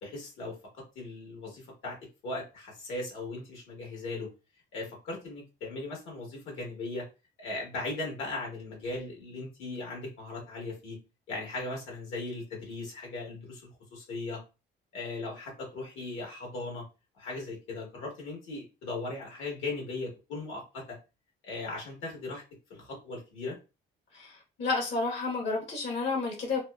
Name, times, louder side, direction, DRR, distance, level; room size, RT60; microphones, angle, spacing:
voice 1, 0.0-2.0 2.2-4.3 4.7-7.0 7.4-11.0 11.3-14.4 14.9-16.8 17.2-21.0 21.4-22.4 22.7-23.6, left 2 dB, 90° left, 1.2 m, -38 dB
voice 2, 24.1-26.6, left 3 dB, 70° left, 0.9 m, -31 dB
2.7 x 2.1 x 2.2 m
cardioid pair, 90°, 20 cm